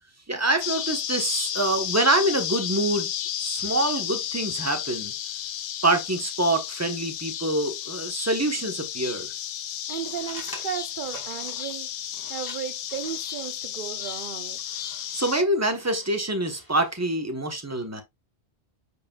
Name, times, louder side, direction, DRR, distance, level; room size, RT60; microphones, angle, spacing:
voice 1, 0.3-3.1 3.4-5.1 5.8-9.3 15.1-18.0, right 1 dB, 15° right, 1.1 m, -25 dB
sound 1, 0.6-15.4, left 10 dB, 70° left, 0.8 m, -33 dB
sound 2, 9.9-17.2, left 1 dB, 20° left, 1.9 m, -48 dB
voice 2, 9.9-11.9 12.3-14.6, right 9 dB, 55° right, 0.6 m, -35 dB
8.3 x 4.9 x 2.4 m
omnidirectional pair, 1.1 m